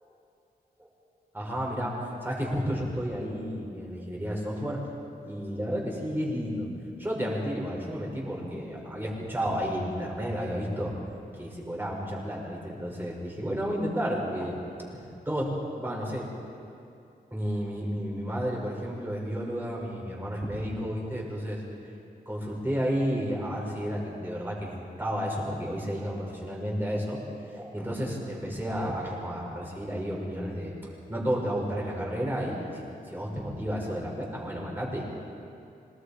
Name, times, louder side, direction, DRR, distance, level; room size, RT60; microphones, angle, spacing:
voice 1, 1.3-4.9 5.2-6.7 7.0-10.9 11.3-14.6 15.3-16.3 17.3-21.6 22.3-27.2 27.5-30.8 31.1-35.0, equal, 10° right, -3 dB, 5.8 m, -32 dB
26.5 x 19.5 x 5.1 m, 2.7 s
wide cardioid pair, 110°, 17 cm